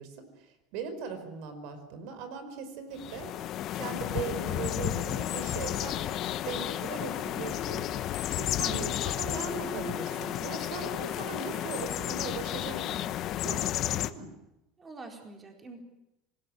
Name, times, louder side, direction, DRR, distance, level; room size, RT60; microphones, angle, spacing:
voice 1, 0.0-3.3 3.7-13.1 13.4-14.3, right 5 dB, 70° right, 11 dB, 5.0 m, -39 dB
sound 1, 3.0-14.1, left 12 dB, 45° left, 1.2 m, -32 dB
voice 2, 8.6-9.0 14.8-15.8, right 3 dB, 20° right, 3 dB, 4.3 m, -44 dB
Keyboard (musical), 9.5-12.3, right 1 dB, ahead, 1.2 m, -46 dB
26.5 x 19.0 x 9.9 m, 0.89 s
supercardioid pair, 135°, 0 cm